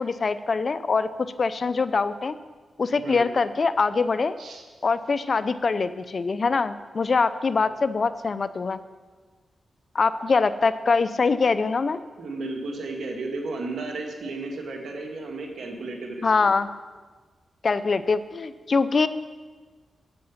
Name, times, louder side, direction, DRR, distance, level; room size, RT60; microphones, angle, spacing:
voice 1, 0.0-2.4 2.8-4.4 4.8-8.8 9.9-12.0 16.2-16.7 17.6-19.1, left 4 dB, 55° left, 14 dB, 0.5 m, -23 dB
voice 2, 12.2-16.5, right 3 dB, 75° right, 2 dB, 1.8 m, -34 dB
8.1 x 7.7 x 7.2 m, 1.4 s
cardioid pair, 60°, 0 cm